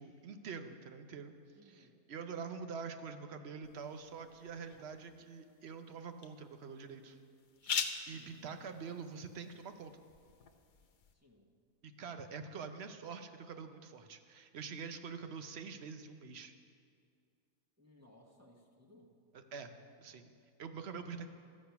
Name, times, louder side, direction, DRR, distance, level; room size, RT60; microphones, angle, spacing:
voice 1, 0.0-1.3 1.6-7.2 7.6-9.9 11.8-16.5 19.3-19.7 20.0-20.3 20.6-21.3, right 5 dB, 55° right, 8 dB, 0.9 m, -46 dB
voice 2, 1.5-2.0 8.1-9.1 11.1-11.5 17.8-19.1, left 1 dB, 10° right, -1 dB, 1.0 m, -63 dB
sound 1, 3.6-11.1, left 6 dB, 50° left, 0.6 m, -45 dB
13.5 x 8.3 x 5.8 m, 2.2 s
omnidirectional pair, 1.5 m